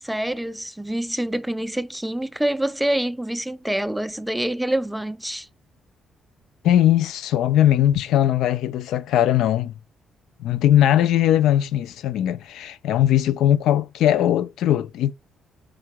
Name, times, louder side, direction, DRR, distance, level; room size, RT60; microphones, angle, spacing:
voice 1, 0.0-5.5, right 1 dB, 5° right, 0.3 m, -26 dB
voice 2, 6.6-9.7 10.4-15.1, left 11 dB, 85° left, 0.3 m, -19 dB
3.8 x 2.2 x 4.5 m
cardioid pair, 90°, 0 cm